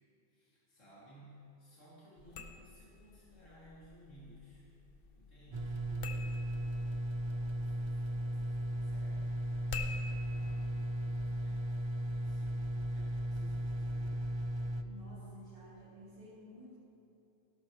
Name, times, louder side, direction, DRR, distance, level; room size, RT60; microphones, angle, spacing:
voice 1, 0.3-4.7 5.2-14.3, equal, 80° left, -8 dB, 3.0 m, -59 dB
sound 1, 2.2-11.9, left 5 dB, 55° left, 0.8 m, -49 dB
sound 2, 5.5-14.8, right 1 dB, 50° right, 0.3 m, -36 dB
voice 2, 14.8-16.7, left 1 dB, 30° right, -11 dB, 3.0 m, -53 dB
18.0 x 11.5 x 3.0 m, 2.9 s
omnidirectional pair, 1.3 m